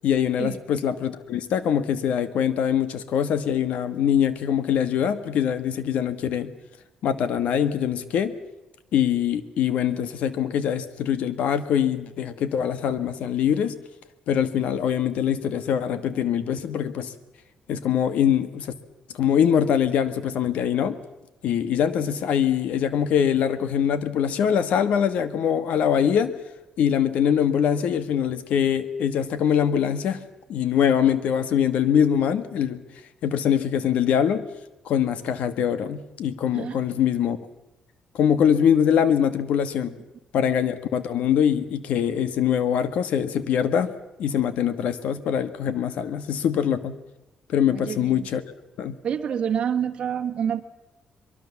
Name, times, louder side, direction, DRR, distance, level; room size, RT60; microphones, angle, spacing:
voice 1, 0.0-6.5 7.0-8.3 8.9-13.8 14.3-17.1 17.7-18.7 19.2-21.0 21.4-26.3 26.8-30.2 30.5-32.8 33.2-34.4 34.8-37.4 38.1-40.0 40.3-43.9 44.2-47.0 47.5-48.4 48.8-48.9, left 8 dB, 75° left, 13 dB, 1.5 m, -23 dB
voice 2, 47.7-48.3 49.0-50.6, right 8 dB, 45° right, 3 dB, 1.4 m, -27 dB
23.5 x 22.5 x 7.1 m, 1.0 s
cardioid pair, 155°, 2 cm